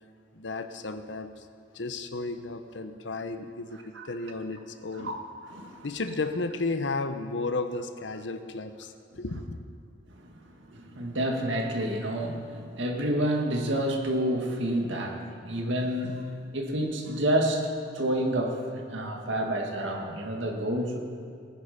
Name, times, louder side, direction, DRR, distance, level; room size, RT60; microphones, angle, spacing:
voice 1, 0.3-1.5 1.7-5.1 5.8-9.6, left 3 dB, 75° left, 9 dB, 0.8 m, -33 dB
voice 2, 5.5-5.9 10.1-21.0, right 1 dB, 85° right, 2 dB, 2.0 m, -29 dB
19.5 x 10.0 x 5.2 m, 2.3 s
head